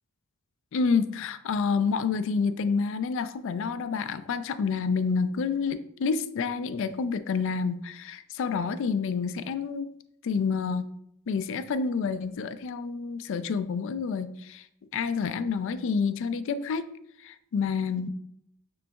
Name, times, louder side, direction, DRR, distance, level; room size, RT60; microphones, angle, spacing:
voice 1, 0.7-9.9 10.2-10.9 11.3-14.6 14.9-16.9 17.2-18.1, left 5 dB, 60° left, 12 dB, 0.3 m, -28 dB
6.0 x 3.8 x 2.3 m, 0.74 s
head